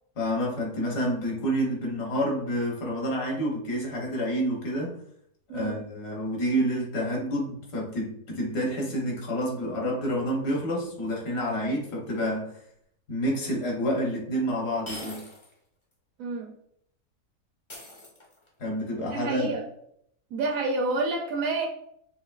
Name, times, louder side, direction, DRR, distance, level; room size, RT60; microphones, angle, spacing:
voice 1, 0.2-5.0 5.5-12.6 13.1-15.3 18.6-19.6, equal, 70° left, 1.7 m, -28 dB
sound 1, 13.4-13.5 14.9-15.6 15.9-16.0 17.7-18.6, left 1 dB, 40° left, 0.4 m, -42 dB
voice 2, 16.2-16.5 18.9-19.7 20.3-21.7, right 2 dB, 65° right, 0.8 m, -29 dB
5.8 x 2.6 x 2.4 m
omnidirectional pair, 1.8 m